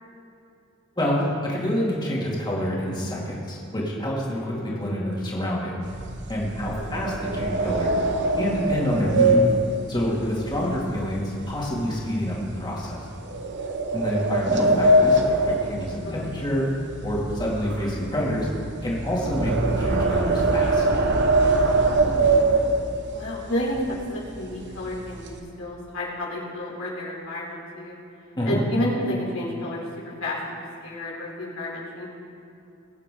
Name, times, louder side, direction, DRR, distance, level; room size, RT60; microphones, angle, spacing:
voice 1, 1.0-5.8 6.3-7.9 8.3-9.4 9.9-13.1 13.9-16.7 17.0-18.5 18.8-20.8 28.3-28.6, equal, 20° left, -4 dB, 2.5 m, -27 dB
sound 1, 5.8-11.2 11.5-11.8 12.3-12.5 13.3-16.6 16.9-23.1 23.7-23.8 24.1-24.4 24.7-25.4, right 2 dB, 60° right, 1.1 m, -22 dB
voice 2, 21.9-22.6 23.1-28.0 28.4-30.4 30.8-32.1, left 1 dB, 85° left, -4 dB, 3.5 m, -31 dB
21.5 x 8.9 x 3.8 m, 2.7 s
head